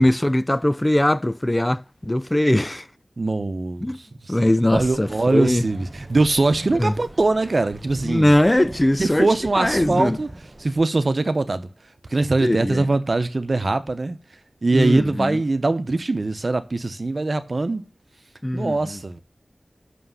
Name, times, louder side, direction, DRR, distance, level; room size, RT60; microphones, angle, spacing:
voice 1, 0.0-2.9 3.8-4.0 4.3-5.7 6.8-6.9 8.0-10.2 12.4-12.9 14.7-15.4 18.4-19.0, left 1 dB, 20° left, 0.5 m, -20 dB
voice 2, 3.2-3.9 4.4-8.3 9.0-10.3 10.6-11.7 12.1-14.2 14.6-17.8 18.5-19.2, right 2 dB, 55° right, 0.9 m, -22 dB
sound 1, 4.7-10.8, right 2 dB, 35° right, 0.6 m, -40 dB
6.2 x 5.8 x 5.5 m
wide cardioid pair, 60°, 0 cm